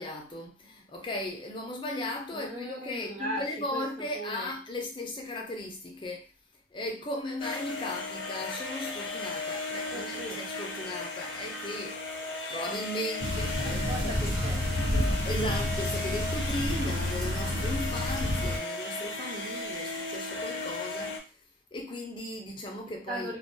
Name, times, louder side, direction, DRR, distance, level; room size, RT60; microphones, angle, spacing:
voice 1, 0.0-6.3 6.7-12.0 12.5-14.3 15.2-21.3 21.7-23.3, left 1 dB, 25° left, 0.4 m, -37 dB
voice 2, 2.3-4.5 9.9-10.5 13.6-15.2 23.1-23.4, right 1 dB, 35° right, 0.9 m, -39 dB
sound 1, 7.4-21.2, left 3 dB, 70° left, 0.6 m, -36 dB
sound 2, 13.2-18.6, left 1 dB, 70° right, 1.0 m, -30 dB
2.2 x 2.2 x 2.6 m
head